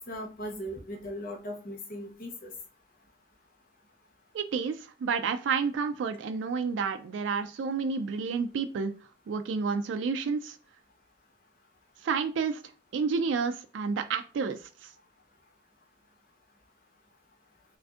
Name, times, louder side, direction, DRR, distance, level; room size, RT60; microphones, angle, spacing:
voice 1, 0.1-2.5, equal, 50° left, 1 dB, 0.9 m, -38 dB
voice 2, 4.3-8.9 9.3-10.6 12.0-12.6 12.9-14.9, right 5 dB, 85° right, 8 dB, 0.3 m, -30 dB
4.8 x 2.6 x 2.4 m, 0.37 s
head